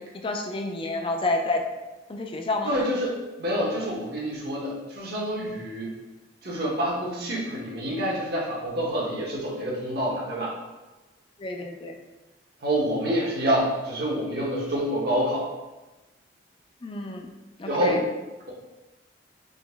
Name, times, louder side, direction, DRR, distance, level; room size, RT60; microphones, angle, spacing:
voice 1, 0.0-1.6 2.1-2.7 11.4-12.0 16.8-17.3 17.6-18.0, left 2 dB, 30° left, 4 dB, 0.4 m, -29 dB
voice 2, 2.6-6.0 6.4-10.5 12.6-15.5 17.6-18.0, equal, 55° right, -4 dB, 0.9 m, -27 dB
3.9 x 3.0 x 3.4 m, 1.1 s
head